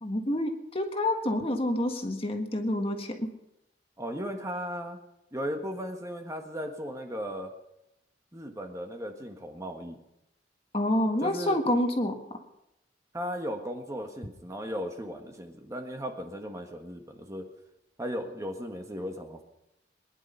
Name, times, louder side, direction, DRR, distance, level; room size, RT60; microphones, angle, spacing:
voice 1, 0.0-3.3 10.7-12.2, left 1 dB, 30° left, 4 dB, 1.6 m, -28 dB
voice 2, 4.0-5.0 5.3-7.5 8.3-10.0 11.2-11.6 13.1-17.5 18.0-19.4, equal, 20° right, 4 dB, 1.5 m, -36 dB
21.5 x 11.0 x 5.6 m, 0.87 s
head